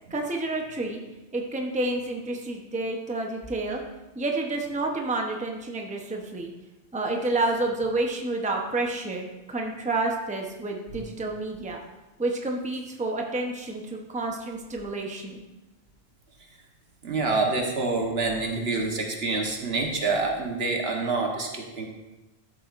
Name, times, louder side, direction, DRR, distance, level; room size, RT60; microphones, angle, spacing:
voice 1, 0.1-1.0 1.3-3.8 4.2-6.5 6.9-11.8 12.2-15.4, right 2 dB, 10° right, 1 dB, 0.8 m, -29 dB
voice 2, 17.0-21.9, right 3 dB, 70° right, 1 dB, 1.5 m, -27 dB
13.0 x 7.5 x 2.5 m, 1.1 s
omnidirectional pair, 1.1 m